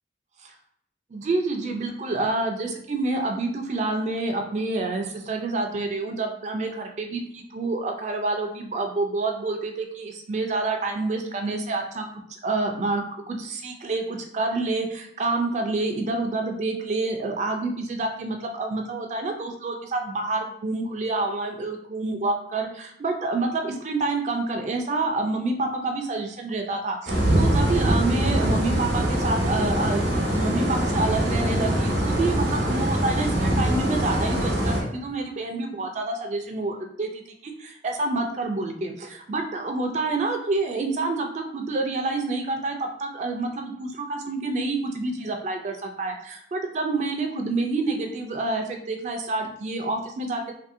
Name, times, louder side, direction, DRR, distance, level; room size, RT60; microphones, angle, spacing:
voice 1, 1.1-50.5, right 2 dB, 40° right, 3 dB, 0.3 m, -28 dB
sound 1, 27.1-34.8, right 1 dB, 80° right, 0.8 m, -23 dB
2.6 x 2.6 x 2.5 m, 0.70 s
head